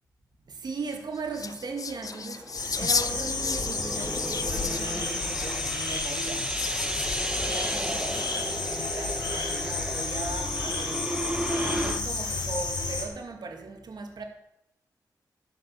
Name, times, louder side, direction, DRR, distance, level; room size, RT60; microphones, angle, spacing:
voice 1, 0.6-6.5 7.4-14.2, right 4 dB, 65° right, 2.4 m, -38 dB
sound 1, 0.8-9.2 9.8-10.4, left 5 dB, 50° left, 0.7 m, -35 dB
sound 2, 1.9-12.0, right 1 dB, 10° right, 1.1 m, -34 dB
sound 3, 2.5-13.0, left 3 dB, 80° left, 4.2 m, -31 dB
12.5 x 7.5 x 7.1 m
cardioid pair, 65°, 8 cm